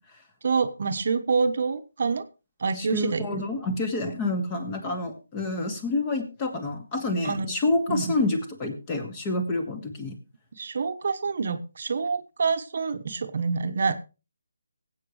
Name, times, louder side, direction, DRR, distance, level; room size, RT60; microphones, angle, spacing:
voice 1, 0.4-2.2 2.6-3.4 7.2-7.5 7.9-8.1 10.6-14.0, right 5 dB, 55° right, 8 dB, 1.1 m, -27 dB
voice 2, 2.8-10.1, left 2 dB, 20° left, 5 dB, 2.2 m, -28 dB
19.0 x 8.5 x 3.2 m, 0.30 s
figure-of-eight pair, 160°, 0 cm